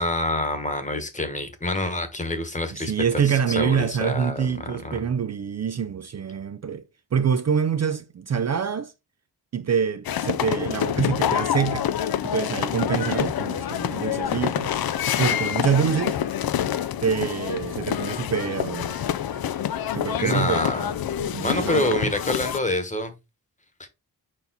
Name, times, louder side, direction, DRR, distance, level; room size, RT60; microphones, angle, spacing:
voice 1, 0.0-5.0 20.2-20.9 21.4-23.1 23.8-23.9, left 1 dB, 20° left, 1.2 m, -27 dB
voice 2, 2.7-6.8 7.1-8.9 9.5-11.9 12.2-16.2 17.0-18.9 19.9-20.7 21.2-22.0, right 7 dB, 45° right, 0.5 m, -26 dB
sound 1, 10.0-22.6, left 10 dB, 70° left, 0.5 m, -27 dB
Trumpet, 14.9-21.1 21.4-22.1, left 4 dB, 45° left, 1.4 m, -47 dB
5.3 x 4.5 x 4.0 m
wide cardioid pair, 140°, 38 cm